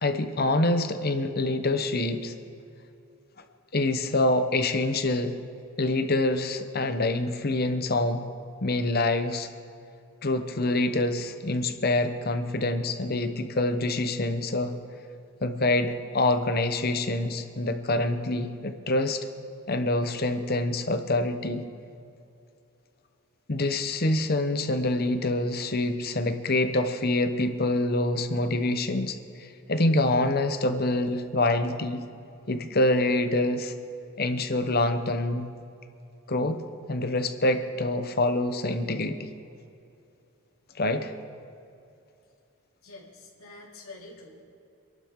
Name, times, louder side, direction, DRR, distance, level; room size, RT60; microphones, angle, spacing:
voice 1, 0.0-2.3 3.7-5.4 5.8-8.2 8.6-9.5 10.2-14.8 15.4-19.3 19.7-21.7 23.5-32.0 32.5-33.7 34.2-35.5 36.3-36.6 36.9-39.2 40.8-41.1, left 2 dB, 45° left, 8 dB, 0.9 m, -26 dB
voice 2, 42.8-44.4, left 2 dB, 85° left, -3 dB, 3.1 m, -46 dB
26.0 x 11.5 x 3.7 m, 2.6 s
head